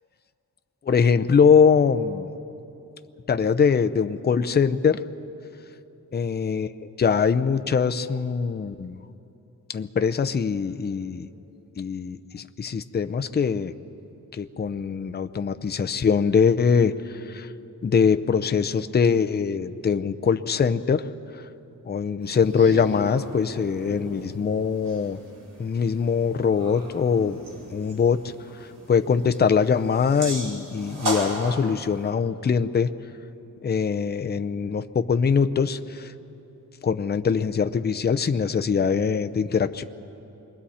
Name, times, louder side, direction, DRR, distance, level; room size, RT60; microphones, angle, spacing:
voice 1, 0.8-2.3 3.3-5.0 6.1-6.7 7.0-9.0 9.7-11.3 11.8-13.7 14.3-17.5 17.8-21.1 21.8-25.2 25.6-27.4 27.7-28.3 28.9-32.9 33.6-36.1 36.8-39.8, left 6 dB, 30° left, 9 dB, 0.5 m, -22 dB
sound 1, 22.2-32.1, right 1 dB, 75° right, 3.9 m, -36 dB
27.5 x 22.5 x 4.3 m, 3.0 s
wide cardioid pair, 140°, 33 cm